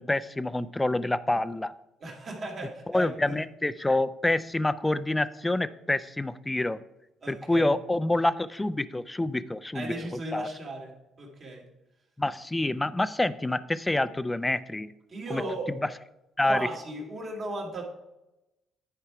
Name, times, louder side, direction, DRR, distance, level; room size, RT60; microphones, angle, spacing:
voice 1, 0.0-1.7 2.9-6.8 7.3-10.5 12.2-14.9 15.3-15.4 16.4-16.7, left 2 dB, 15° left, 14 dB, 0.5 m, -27 dB
voice 2, 2.0-3.3 7.2-7.7 9.7-10.9 11.2-11.7 15.1-15.7 16.4-17.8, right 1 dB, 50° right, 0 dB, 2.5 m, -36 dB
10.0 x 4.6 x 4.9 m, 0.92 s
supercardioid pair, 65°, 0 cm